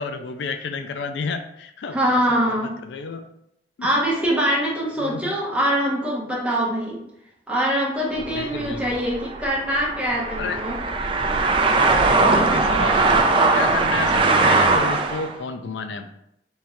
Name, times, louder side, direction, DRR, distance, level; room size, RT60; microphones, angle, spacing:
voice 1, 0.0-2.0 2.3-3.3 3.8-3.9 5.0-5.4 8.3-9.0 10.4-10.6 11.7-13.1 13.5-16.1, left 4 dB, 75° left, 8 dB, 0.3 m, -31 dB
voice 2, 1.9-2.7 3.8-7.0 7.5-10.8, equal, 5° right, -5 dB, 1.0 m, -23 dB
sound 1, 8.2-15.3, right 3 dB, 30° right, 0.3 m, -20 dB
3.6 x 2.6 x 4.3 m, 0.77 s
head